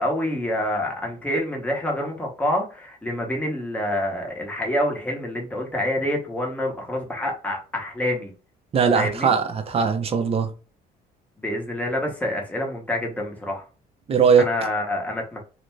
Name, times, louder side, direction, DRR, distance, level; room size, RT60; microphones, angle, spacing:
voice 1, 0.0-8.3 8.9-9.3 11.4-13.6 14.4-15.4, left 1 dB, 10° left, 0.9 m, -27 dB
voice 2, 8.7-10.5 14.1-14.5, right 6 dB, 35° right, 0.6 m, -19 dB
2.6 x 2.1 x 3.1 m
cardioid pair, 110°, 17 cm